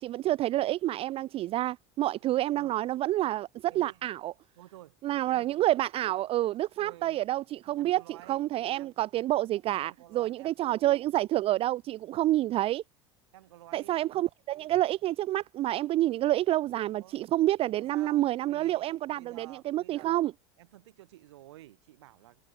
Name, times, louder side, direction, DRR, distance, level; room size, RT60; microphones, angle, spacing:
voice 1, 0.0-4.3 5.0-8.0 8.3-12.8 13.7-20.3, right 15 dB, 40° right, 0.4 m, -28 dB
voice 2, 3.7-4.1 4.6-5.5 6.8-7.2 7.8-8.4 8.8-8.9 9.8-10.5 13.3-14.2 17.0-17.2 17.7-20.1 20.6-22.4, right 16 dB, 80° right, 3.5 m, -52 dB
hypercardioid pair, 90°, 14 cm